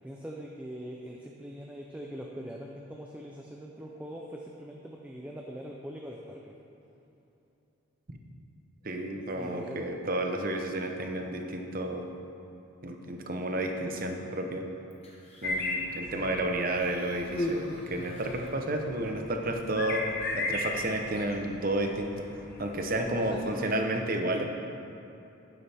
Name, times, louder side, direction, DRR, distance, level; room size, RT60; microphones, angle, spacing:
voice 1, 0.0-6.5 9.1-9.9 16.1-16.4 23.2-23.9, equal, 5° right, -1 dB, 0.5 m, -42 dB
voice 2, 8.8-12.1 12.8-14.7 15.4-20.1 20.3-22.3 22.6-24.5, right 1 dB, 40° right, 3 dB, 0.8 m, -31 dB
Human voice, 14.9-15.8 16.7-18.6 19.6-19.7, left 1 dB, 25° left, 1.2 m, -37 dB
sound 1, 15.4-23.4, left 2 dB, 45° left, 1.0 m, -37 dB
11.5 x 9.8 x 3.5 m, 2.9 s
head